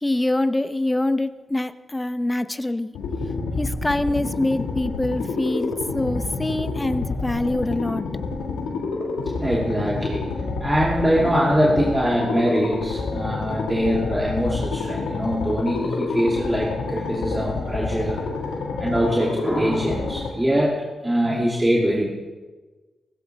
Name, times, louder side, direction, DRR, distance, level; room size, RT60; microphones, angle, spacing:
voice 1, 0.0-2.9 3.6-8.1, left 1 dB, 20° left, 12 dB, 0.9 m, -25 dB
sound 1, 2.9-20.3, left 3 dB, 90° left, 1.9 m, -28 dB
voice 2, 9.4-10.2 10.6-18.2 18.8-22.1, equal, 20° right, -4 dB, 3.1 m, -23 dB
17.5 x 16.0 x 3.5 m, 1.3 s
supercardioid pair, 40°, 0 cm